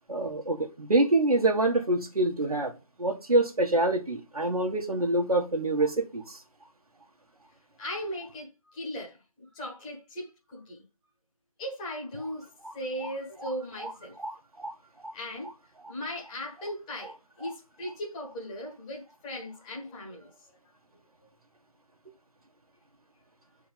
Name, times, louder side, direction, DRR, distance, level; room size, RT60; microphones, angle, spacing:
voice 1, 0.1-2.7 3.0-6.4 14.2-14.7, right 2 dB, 90° right, 1.7 m, -26 dB
voice 2, 7.8-10.8 11.6-12.5 12.7-14.2 15.1-15.5 15.9-20.6, equal, 10° left, 1.5 m, -38 dB
7.3 x 4.6 x 5.1 m
figure-of-eight pair, 170°, 18 cm